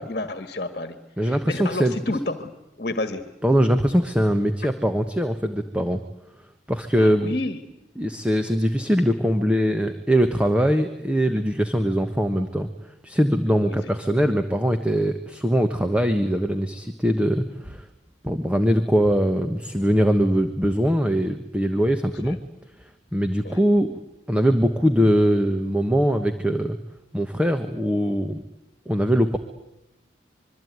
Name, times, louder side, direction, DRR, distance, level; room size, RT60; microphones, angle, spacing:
voice 1, 0.0-2.5 2.8-3.2 7.0-7.6 13.6-13.9 22.2-22.4 23.4-23.6, left 2 dB, 45° left, 10 dB, 1.8 m, -30 dB
voice 2, 1.2-1.9 3.4-6.0 6.7-7.3 8.0-12.7 13.0-17.9 18.2-22.4 22.8-24.0 24.3-26.8 27.1-28.4 28.9-29.4, equal, 5° right, 7 dB, 1.2 m, -22 dB
26.0 x 23.0 x 9.5 m, 0.87 s
head